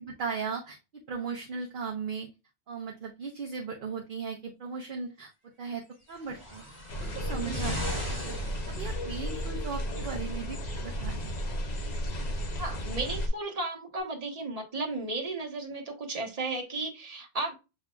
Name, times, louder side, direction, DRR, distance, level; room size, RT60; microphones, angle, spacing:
voice 1, 0.1-2.3 2.7-5.3 5.6-5.8 6.1-6.6 7.0-8.3 8.7-11.2, right 5 dB, 50° right, 0 dB, 0.8 m, -37 dB
sound 1, 6.1-9.4 10.4-10.5, left 1 dB, 25° left, 2.1 m, -38 dB
sound 2, 6.9-13.3, equal, 45° left, 0.7 m, -34 dB
voice 2, 7.4-7.7 12.6-17.5, right 2 dB, 35° right, 1 dB, 1.1 m, -34 dB
7.1 x 2.7 x 2.2 m, 0.27 s
omnidirectional pair, 1.2 m